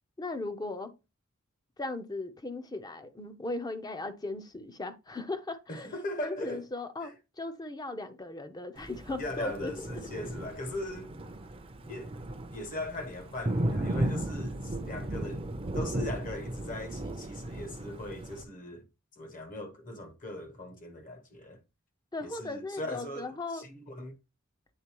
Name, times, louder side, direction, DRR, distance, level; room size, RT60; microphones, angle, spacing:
voice 1, 0.2-0.9 1.8-9.7 10.2-10.3 22.1-23.7, left 2 dB, 20° left, 0.6 m, -37 dB
voice 2, 5.7-6.6 7.0-7.1 9.2-11.1 11.9-12.1 12.5-15.5 15.7-18.9 19.2-21.6 22.2-24.2, left 1 dB, 40° left, 1.1 m, -39 dB
Thunder, 8.8-18.4, right 1 dB, 25° right, 0.6 m, -35 dB
8.8 x 3.7 x 3.0 m
head